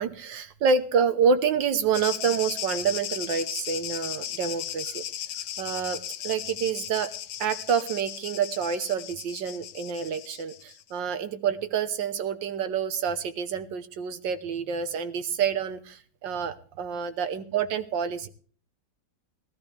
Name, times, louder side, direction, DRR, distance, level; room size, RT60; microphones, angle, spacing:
voice 1, 0.0-5.2 5.6-6.0 6.2-7.1 7.4-18.3, right 6 dB, 75° right, 10 dB, 1.8 m, -28 dB
sound 1, 1.9-10.8, left 10 dB, 65° left, 1.2 m, -36 dB
19.5 x 13.0 x 3.4 m, 0.43 s
omnidirectional pair, 2.0 m